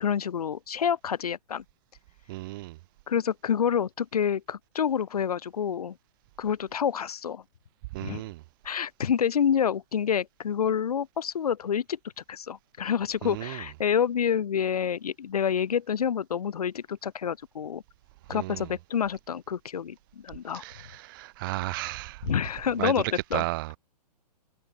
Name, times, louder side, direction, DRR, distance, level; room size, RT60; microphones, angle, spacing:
voice 1, 0.0-1.6 3.1-6.0 6.4-7.4 8.0-8.2 8.6-12.0 12.3-17.8 18.3-20.6 22.2-23.4, left 8 dB, 65° left, 1.8 m, -28 dB
voice 2, 2.3-2.8 7.9-8.4 13.2-13.6 18.3-18.7 20.5-22.2 22.8-22.9 23.3-23.8, right 20 dB, 30° right, 0.5 m, -34 dB
figure-of-eight pair, 120°, 21 cm